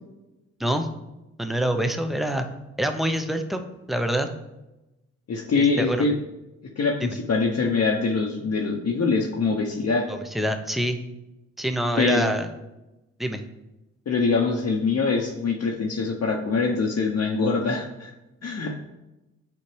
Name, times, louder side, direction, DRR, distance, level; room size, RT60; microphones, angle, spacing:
voice 1, 1.4-2.5 2.8-3.6 3.9-4.3 5.6-6.1 7.0-7.1 10.1-11.0 11.6-12.5 13.2-13.4, right 1 dB, ahead, 6 dB, 0.8 m, -25 dB
voice 2, 5.3-6.1 6.8-10.1 12.0-12.3 14.1-18.1 18.4-18.8, left 4 dB, 45° left, -1 dB, 1.0 m, -24 dB
9.3 x 4.2 x 3.4 m, 0.99 s
hypercardioid pair, 45°, 37 cm